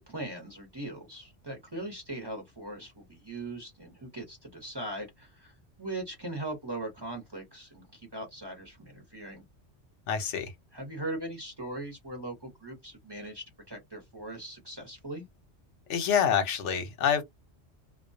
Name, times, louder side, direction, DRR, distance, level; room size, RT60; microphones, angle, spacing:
voice 1, 0.0-5.5 5.8-9.4 10.7-15.2, right 1 dB, 25° right, 0.8 m, -40 dB
voice 2, 10.1-10.5 15.9-17.2, left 8 dB, 80° left, 1.0 m, -26 dB
2.3 x 2.2 x 2.5 m
omnidirectional pair, 1.2 m